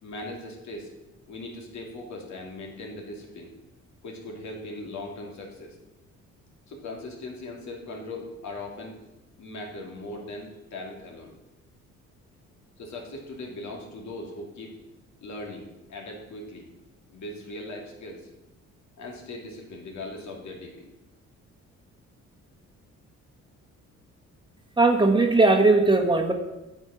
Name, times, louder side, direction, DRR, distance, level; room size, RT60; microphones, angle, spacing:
voice 1, 0.0-0.9 1.3-3.5 4.0-5.8 6.7-9.0 9.4-11.3 12.8-14.8 15.2-16.7 17.1-18.3 19.0-20.9, left 2 dB, 70° left, 0 dB, 2.6 m, -39 dB
voice 2, 24.8-26.3, right 3 dB, 15° right, 3 dB, 1.2 m, -19 dB
8.8 x 7.2 x 5.7 m, 0.98 s
cardioid pair, 90°, 30 cm